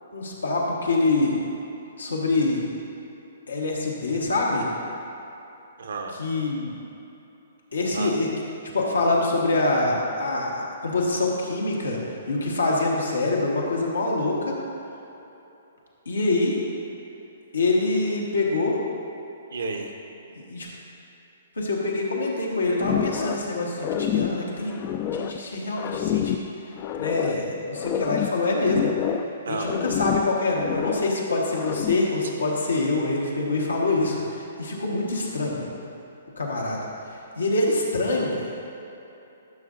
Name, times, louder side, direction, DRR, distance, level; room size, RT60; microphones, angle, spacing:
voice 1, 0.1-1.4 2.0-2.6 3.5-4.7 6.2-6.7 7.7-8.3 8.7-12.0 12.3-14.6 16.0-16.6 17.5-18.8 20.3-20.7 21.6-24.7 25.1-26.4 27.0-28.9 29.5-35.7 36.4-36.9 37.4-38.5, left 2 dB, 85° left, -2 dB, 1.3 m, -25 dB
voice 2, 5.8-6.2 7.9-8.1 19.5-19.9 29.5-29.8, right 3 dB, 70° right, 2 dB, 0.9 m, -31 dB
sound 1, 22.8-23.5 23.8-25.4 25.8-27.4 27.8-29.4 29.6-31.2 31.5-32.1, left 9 dB, 35° left, 0.3 m, -28 dB
11.0 x 6.2 x 2.6 m, 3.0 s
figure-of-eight pair, 125°, 0 cm